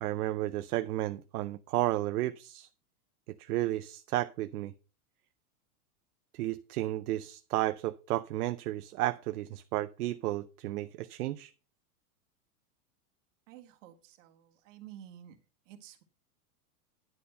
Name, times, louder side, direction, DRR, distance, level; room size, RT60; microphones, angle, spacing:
voice 1, 0.0-2.7 3.4-4.7 6.3-11.5, right 16 dB, 70° right, 0.7 m, -32 dB
voice 2, 13.5-15.4 15.7-16.0, right 11 dB, 50° right, 1.8 m, -51 dB
10.5 x 4.3 x 6.6 m
supercardioid pair, 150°, 46 cm